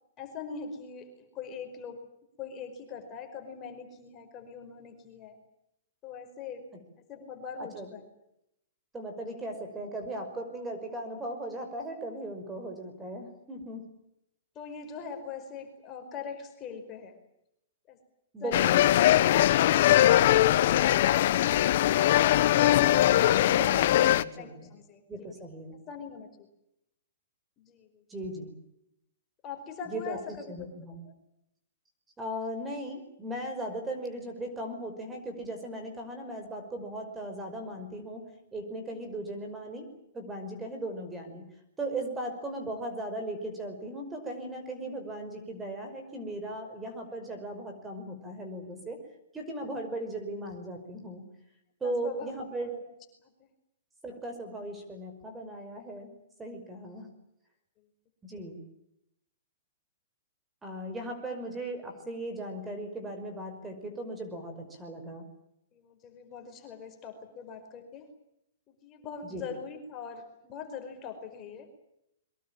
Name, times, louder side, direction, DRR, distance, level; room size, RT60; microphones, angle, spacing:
voice 1, 0.2-2.0 2.4-5.4 6.0-6.7 7.1-8.0 14.5-17.1 17.9-18.0 24.3-25.3 25.9-26.3 27.6-28.0 29.4-30.7 31.0-31.1 51.8-52.3 52.6-52.8 53.4-53.5 65.7-68.1 68.7-71.7, left 6 dB, 25° left, 5 dB, 5.0 m, -42 dB
voice 2, 8.9-13.8 18.3-18.8 22.3-24.7 25.1-25.8 28.1-28.5 29.9-31.0 32.2-38.3 38.5-39.9 40.1-41.5 41.8-49.0 49.3-51.2 51.8-52.7 54.0-56.1 56.4-57.1 58.2-58.6 60.6-65.2 69.2-69.5, right 1 dB, 10° right, 6 dB, 5.5 m, -38 dB
sound 1, 18.5-24.2, left 13 dB, 55° left, 1.2 m, -21 dB
23.5 x 22.5 x 9.0 m, 0.80 s
hypercardioid pair, 140°, 0 cm